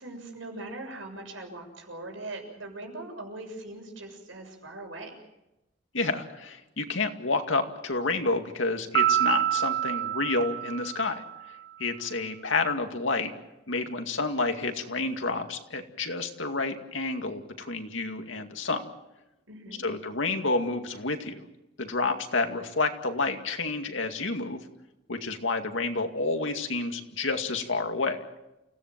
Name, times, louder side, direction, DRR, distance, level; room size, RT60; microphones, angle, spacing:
voice 1, 0.0-5.1 19.5-19.8, right 2 dB, 85° right, 3 dB, 7.0 m, -41 dB
voice 2, 5.9-11.2 11.8-13.3 13.7-18.8 19.8-21.5 21.8-24.6 25.1-28.2, left 3 dB, 80° left, 5 dB, 2.3 m, -29 dB
Piano, 8.9-11.5, right 11 dB, 60° right, 1.4 m, -27 dB
29.5 x 17.0 x 7.6 m, 0.94 s
head